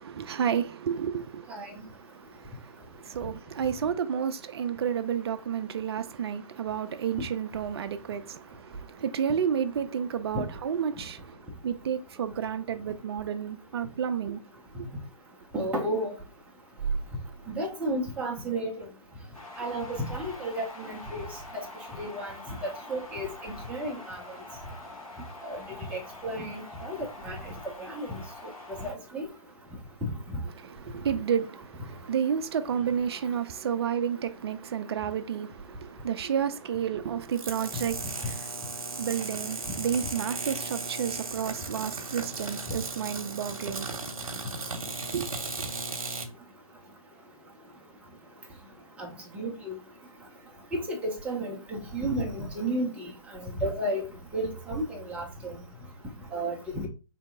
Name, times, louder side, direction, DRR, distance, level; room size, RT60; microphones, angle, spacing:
voice 1, 0.0-1.5 2.0-11.4 11.6-14.4 14.7-14.9 30.6-44.0 45.1-45.3, right 8 dB, 45° right, 0.5 m, -31 dB
voice 2, 15.5-16.1 17.5-18.7 19.6-21.3 21.5-21.6 22.0-22.3 22.6-24.2 25.4-25.6 25.9-27.4 27.8-28.1 28.8-29.3 49.0-49.1 49.3-49.7 50.7-54.0 54.3-55.5 56.3-56.9, right 1 dB, 5° right, 0.7 m, -32 dB
sound 1, 19.3-28.9, left 2 dB, 90° left, 1.6 m, -45 dB
sound 2, 37.3-46.3, right 3 dB, 80° right, 0.9 m, -36 dB
3.6 x 2.7 x 3.5 m
figure-of-eight pair, 140°, 18 cm